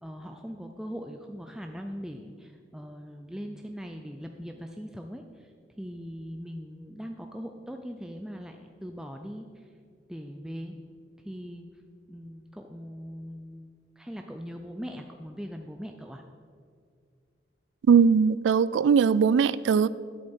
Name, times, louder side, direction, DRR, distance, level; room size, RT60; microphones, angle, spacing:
voice 1, 0.0-5.5 5.8-9.7 10.1-10.8 11.2-11.7 12.1-13.7 14.0-16.2, equal, 5° right, 4 dB, 0.3 m, -40 dB
voice 2, 17.9-19.9, right 6 dB, 85° right, 18 dB, 0.3 m, -20 dB
11.0 x 7.7 x 4.3 m, 2.2 s
head